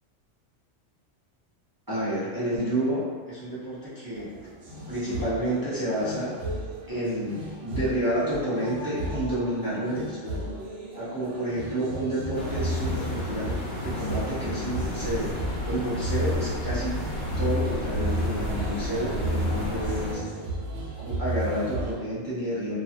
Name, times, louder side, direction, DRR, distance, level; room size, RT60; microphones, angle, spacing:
voice 1, 1.9-4.3 4.9-6.4 6.9-10.5 10.9-13.5 13.8-17.0 17.4-20.2 21.0-22.7, right 1 dB, 25° right, -11 dB, 0.4 m, -30 dB
sound 1, 4.1-21.9, right 1 dB, 75° right, 1.1 m, -33 dB
sound 2, 12.3-20.1, left 2 dB, 70° left, 1.2 m, -33 dB
2.7 x 2.5 x 2.4 m, 1.5 s
omnidirectional pair, 1.4 m